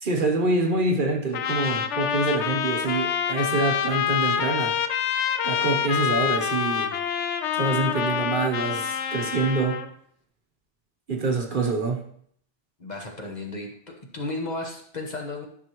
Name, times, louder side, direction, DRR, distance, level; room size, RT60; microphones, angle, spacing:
voice 1, 0.0-4.8 5.4-7.0 7.5-9.8 11.1-12.0, right 3 dB, 45° right, 2 dB, 1.0 m, -26 dB
Trumpet, 1.3-9.9, left 8 dB, 75° left, 0.9 m, -26 dB
voice 2, 12.8-13.7 14.1-15.5, left 2 dB, 40° left, 1 dB, 1.2 m, -33 dB
11.0 x 6.0 x 3.0 m, 0.65 s
omnidirectional pair, 1.2 m